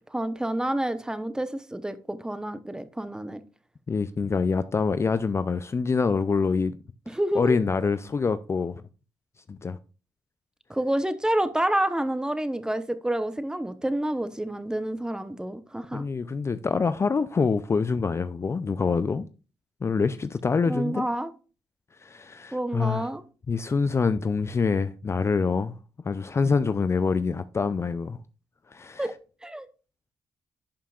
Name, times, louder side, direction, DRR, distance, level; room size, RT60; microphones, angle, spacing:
voice 1, 0.1-3.4 7.1-7.6 10.7-16.0 20.7-21.3 22.5-23.2 29.0-29.1 29.4-29.7, right 1 dB, 10° right, 0.8 m, -28 dB
voice 2, 3.9-6.8 7.4-8.8 9.5-9.8 15.9-19.3 19.8-21.1 22.0-23.1 23.5-25.7 26.0-28.2 28.7-29.1, left 5 dB, 30° left, 0.4 m, -25 dB
11.0 x 5.6 x 2.4 m
cardioid pair, 80°, 8 cm